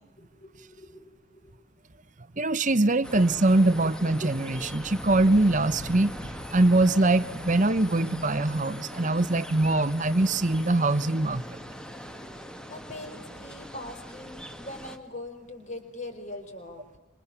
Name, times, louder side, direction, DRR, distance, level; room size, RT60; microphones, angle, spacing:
voice 1, 0.2-1.5 12.2-16.8, left 2 dB, 35° left, 4.9 m, -42 dB
voice 2, 2.4-6.1 6.5-11.6, right 2 dB, 35° right, 1.0 m, -23 dB
sound 1, 3.0-15.0, equal, 5° left, 1.8 m, -40 dB
27.0 x 26.0 x 7.3 m
head